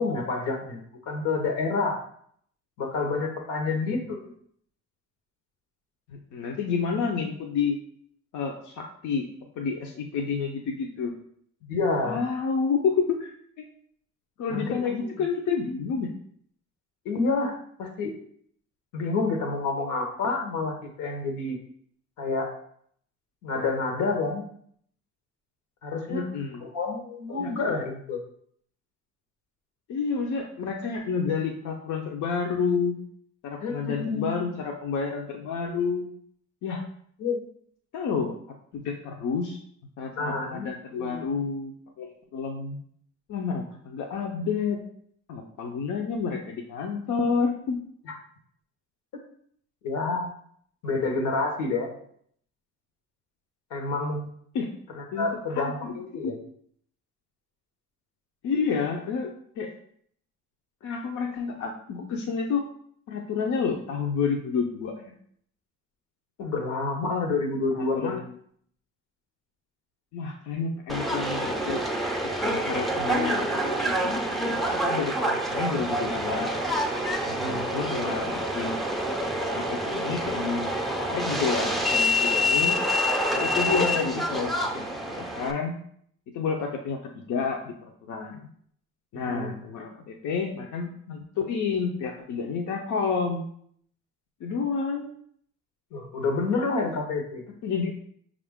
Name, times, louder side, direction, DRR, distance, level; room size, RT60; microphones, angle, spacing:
voice 1, 0.0-2.0 2.8-4.3 11.7-12.2 14.5-14.7 15.0-15.1 17.0-18.1 18.9-21.6 22.2-22.5 23.4-24.4 25.8-26.3 26.6-28.2 33.6-34.3 37.2-37.4 40.2-41.3 48.0-48.1 49.8-50.3 50.8-51.9 53.7-54.2 54.9-56.4 66.4-68.2 77.3-77.7 89.1-89.5 95.9-97.4, left 3 dB, 90° left, 3 dB, 0.9 m, -28 dB
voice 2, 6.1-7.8 8.3-9.3 9.6-11.1 12.0-13.3 13.6-13.7 14.4-16.1 26.1-26.6 27.4-27.5 29.9-33.0 33.4-36.1 36.6-36.8 37.9-38.3 38.7-39.6 40.0-42.8 43.3-44.8 45.3-47.8 54.5-54.7 55.1-55.3 55.5-55.9 56.2-56.3 58.4-59.3 59.6-59.7 60.8-62.6 63.1-64.9 67.8-68.3 70.1-71.8 72.4-76.5 77.4-78.8 79.4-80.7 81.0-82.8 83.3-85.7 86.3-87.7 88.1-88.4 89.1-93.4 94.4-95.1 97.6-97.9, left 5 dB, 75° left, 1 dB, 0.6 m, -29 dB
Subway metro underground, 70.9-85.5, equal, ahead, 0.4 m, -27 dB
5.3 x 2.5 x 3.5 m, 0.65 s
cardioid pair, 90°, 30 cm